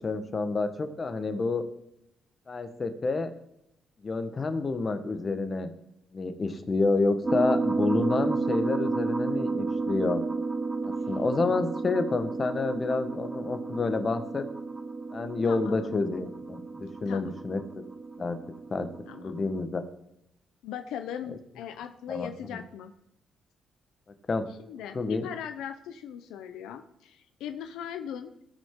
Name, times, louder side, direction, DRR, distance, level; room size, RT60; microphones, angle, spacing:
voice 1, 0.0-1.6 2.5-3.3 4.0-5.7 6.1-10.2 10.8-14.4 15.1-17.8 18.2-18.4 18.7-18.9 19.1-19.8 22.1-22.6 24.3-24.4 24.9-25.3, left 3 dB, 35° left, 9 dB, 1.3 m, -29 dB
sound 1, 7.2-19.7, right 3 dB, 20° right, 0.7 m, -32 dB
voice 2, 15.4-16.0 17.1-17.3 19.1-19.3 20.6-22.9 24.6-28.4, left 9 dB, 90° left, 9 dB, 0.7 m, -39 dB
17.5 x 6.4 x 3.8 m, 0.80 s
cardioid pair, 85°, 0 cm